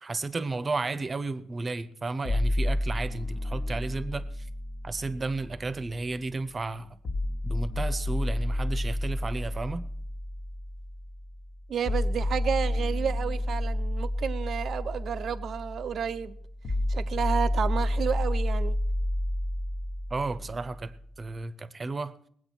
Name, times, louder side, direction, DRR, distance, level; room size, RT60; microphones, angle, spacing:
voice 1, 0.0-4.5 4.8-6.9 7.4-9.8 20.1-22.1, right 3 dB, 30° right, 0.9 m, -33 dB
sound 1, 2.2-6.2 7.0-21.1, left 1 dB, 50° left, 1.3 m, -30 dB
voice 2, 11.7-16.4 16.9-18.7, right 7 dB, 60° right, 0.7 m, -31 dB
20.0 x 7.9 x 6.1 m
cardioid pair, 90°, 0 cm